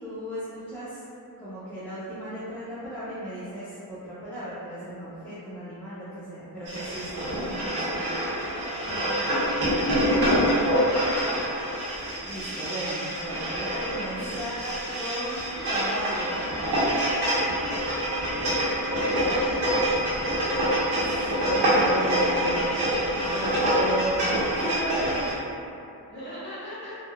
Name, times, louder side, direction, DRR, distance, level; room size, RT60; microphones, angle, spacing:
voice 1, 0.0-1.0 1.4-8.2 12.2-15.4 15.7-16.5 20.8-23.0 23.3-25.2, right 1 dB, 5° left, -14 dB, 0.6 m, -35 dB
sound 1, 6.6-25.3, equal, 75° right, 1.0 m, -26 dB
voice 2, 8.8-10.5 13.3-13.7 14.1-14.2 19.3-19.7 26.1-27.0, equal, 30° left, -11 dB, 1.3 m, -39 dB
3.5 x 2.1 x 2.3 m, 2.7 s
cardioid pair, 110°, 39 cm